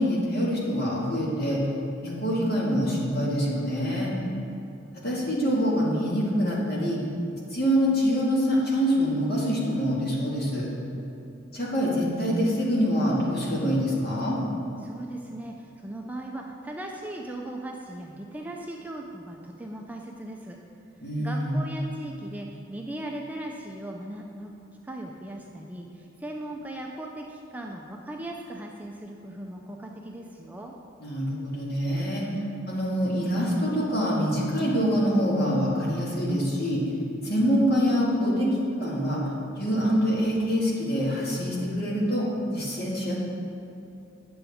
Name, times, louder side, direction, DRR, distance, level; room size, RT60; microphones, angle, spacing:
voice 1, 0.0-1.6 2.0-4.1 5.0-7.0 7.5-10.7 11.5-14.4 21.0-21.6 31.0-32.2 32.7-36.8 37.2-38.5 38.8-39.2 39.6-43.1, equal, 55° left, -5 dB, 1.8 m, -25 dB
voice 2, 14.8-20.6 21.2-24.5 24.8-30.7, right 1 dB, 10° right, 0 dB, 0.4 m, -38 dB
8.9 x 7.0 x 3.5 m, 2.7 s
head